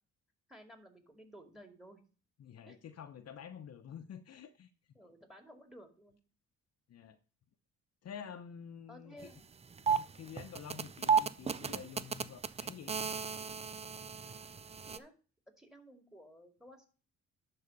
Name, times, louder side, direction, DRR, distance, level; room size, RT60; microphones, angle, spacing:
voice 1, 0.5-2.0 2.7-2.8 4.9-6.2 8.9-9.5 14.8-15.2 15.6-16.9, equal, ahead, 6 dB, 2.3 m, -55 dB
voice 2, 2.4-4.7 6.9-7.2 8.0-9.3 9.9-13.0, left 8 dB, 55° left, 7 dB, 0.9 m, -49 dB
sound 1, 9.2-9.3 9.6-15.0, right 6 dB, 20° right, 0.4 m, -34 dB
11.5 x 3.9 x 5.3 m, 0.37 s
cardioid pair, 90°, 30 cm